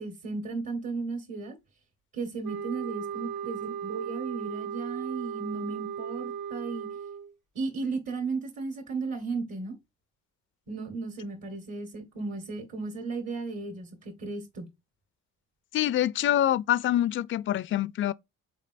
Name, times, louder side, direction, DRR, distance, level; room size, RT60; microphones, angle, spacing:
voice 1, 0.0-1.5 2.1-6.9 7.5-9.7 10.7-14.7, right 4 dB, 60° right, 1.7 m, -35 dB
sound 1, 2.4-7.3, right 7 dB, 80° right, 0.9 m, -36 dB
voice 2, 15.7-18.1, left 12 dB, 45° left, 0.4 m, -25 dB
5.3 x 3.9 x 2.5 m
cardioid pair, 90°, 30 cm